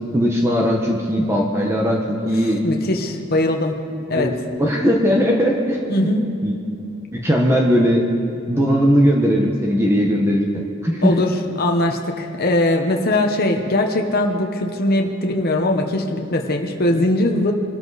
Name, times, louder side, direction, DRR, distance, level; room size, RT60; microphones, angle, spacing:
voice 1, 0.1-2.6 4.1-4.3 4.6-6.1 6.4-6.6 7.1-8.0 8.5-11.1, equal, 15° right, -1 dB, 1.2 m, -18 dB
voice 2, 2.6-3.7 4.1-4.3 5.9-6.3 11.0-11.3 11.6-17.5, left 1 dB, 45° left, 3 dB, 1.1 m, -20 dB
24.5 x 13.0 x 4.1 m, 2.7 s
head